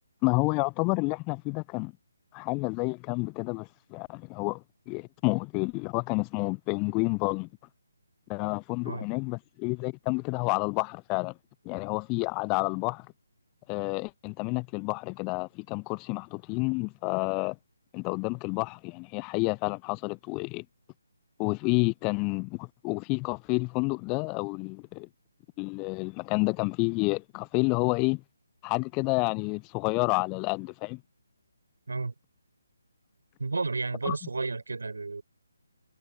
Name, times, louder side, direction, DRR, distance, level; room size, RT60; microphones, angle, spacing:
voice 1, 0.2-1.9 2.3-7.5 8.3-11.4 11.7-13.1 13.7-17.6 17.9-20.6 21.4-25.1 25.6-28.2 28.6-31.0 34.0-34.2, left 30 dB, 15° left, 0.3 m, -29 dB
voice 2, 33.4-35.2, right 3 dB, 60° right, 6.6 m, -32 dB
figure-of-eight pair, 145°, 0 cm